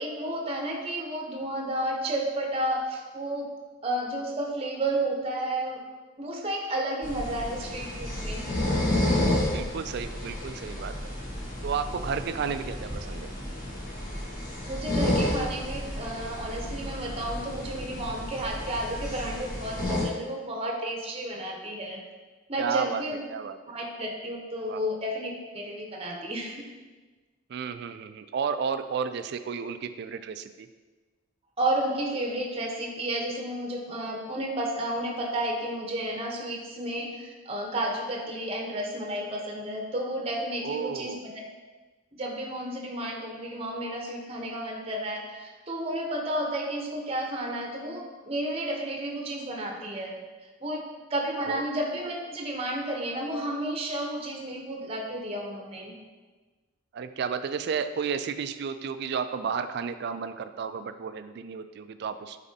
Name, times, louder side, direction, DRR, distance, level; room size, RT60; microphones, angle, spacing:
voice 1, 0.0-3.5 3.8-5.8 6.2-8.5 14.7-22.0 22.5-23.2 23.7-26.6 31.6-41.2 42.2-50.1 50.6-50.8 51.1-56.0, right 1 dB, 30° right, 1 dB, 0.7 m, -32 dB
sound 1, 7.0-20.0, left 1 dB, 45° left, 1.5 m, -31 dB
voice 2, 9.5-10.9 11.6-13.3 22.6-23.0 23.3-23.6 24.7-24.8 27.5-30.7 40.6-41.2 51.5-51.6 56.9-62.4, right 6 dB, 55° right, 11 dB, 0.3 m, -32 dB
8.5 x 4.1 x 2.7 m, 1.3 s
head